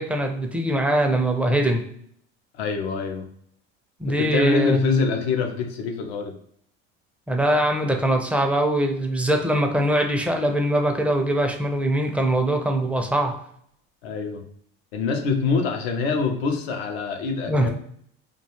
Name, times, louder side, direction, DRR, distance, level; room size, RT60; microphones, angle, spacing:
voice 1, 0.0-1.8 4.0-4.9 7.3-13.3 17.5-17.7, right 1 dB, 5° right, 3 dB, 0.4 m, -22 dB
voice 2, 2.5-3.3 4.1-6.3 14.0-14.4 14.9-17.7, left 4 dB, 80° left, 3 dB, 0.6 m, -25 dB
2.3 x 2.3 x 2.9 m, 0.66 s
supercardioid pair, 95°, 31 cm